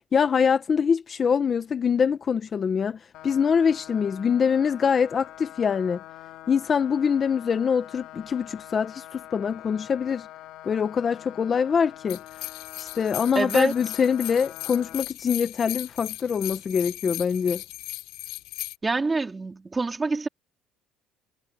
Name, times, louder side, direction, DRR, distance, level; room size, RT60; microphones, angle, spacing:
voice 1, 0.1-6.0 6.5-10.3 10.6-12.2 12.8-17.6, left 6 dB, 30° left, 0.8 m, -24 dB
sound 1, 3.1-15.0, left 14 dB, 70° left, 2.5 m, -45 dB
sound 2, 12.1-18.8, left 19 dB, 85° left, 3.3 m, -37 dB
voice 2, 13.4-13.7 18.8-20.3, right 3 dB, 15° right, 3.9 m, -26 dB
cardioid pair, 150°, 0 cm